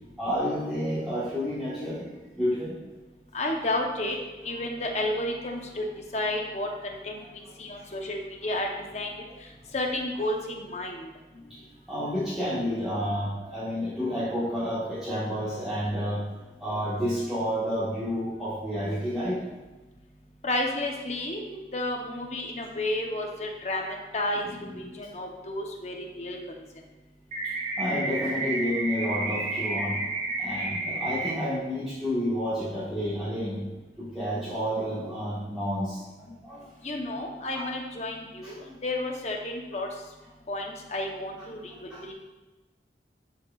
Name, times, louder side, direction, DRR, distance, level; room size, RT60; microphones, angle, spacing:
voice 1, 0.2-2.8 5.5-5.6 7.2-7.3 7.8-7.9 11.3-11.6 11.9-16.2 16.6-19.4 24.4-24.8 27.8-30.0 30.4-33.6 34.0-36.7 37.5-37.6 38.4-38.5 41.9-42.0, equal, ahead, -13 dB, 1.5 m, -30 dB
voice 2, 3.3-4.1 4.4-5.8 6.1-7.2 7.6-9.1 9.7-11.1 20.4-26.4 36.8-39.9 40.5-42.1, left 1 dB, 40° left, 1 dB, 0.9 m, -31 dB
sound 1, 27.3-31.3, right 2 dB, 35° right, 1.0 m, -31 dB
12.5 x 4.6 x 2.4 m, 1.2 s
head